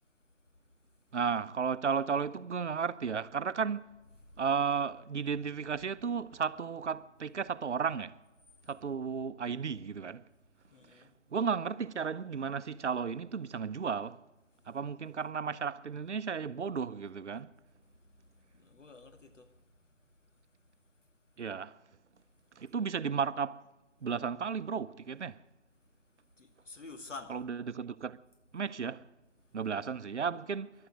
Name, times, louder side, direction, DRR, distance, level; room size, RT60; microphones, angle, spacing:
voice 1, 1.1-3.8 4.4-8.2 8.7-10.2 10.9-11.0 11.3-14.2 14.7-17.5 21.4-21.8 22.6-23.6 24.0-25.4 27.3-28.2 28.5-29.1 29.5-30.7, right 6 dB, 70° right, 0.8 m, -34 dB
voice 2, 10.7-11.1 17.8-19.7 26.4-27.3, left 3 dB, 85° left, 2.5 m, -50 dB
15.5 x 11.5 x 7.8 m
figure-of-eight pair, 160°, 36 cm